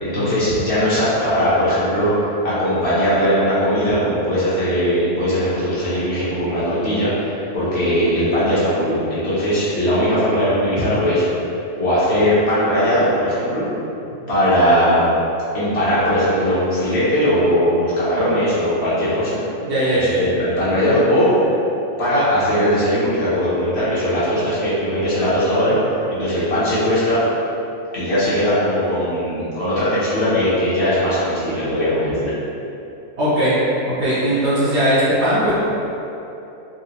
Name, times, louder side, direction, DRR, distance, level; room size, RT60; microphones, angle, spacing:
voice 1, 0.0-11.2 11.8-13.7 14.3-15.0 15.5-19.4 19.9-21.5 22.0-27.2 27.9-32.3, equal, 50° left, -11 dB, 1.1 m, -19 dB
voice 2, 19.6-20.1 33.2-33.5 33.9-35.5, equal, 60° right, -10 dB, 0.8 m, -19 dB
3.8 x 2.3 x 2.8 m, 2.9 s
omnidirectional pair, 1.5 m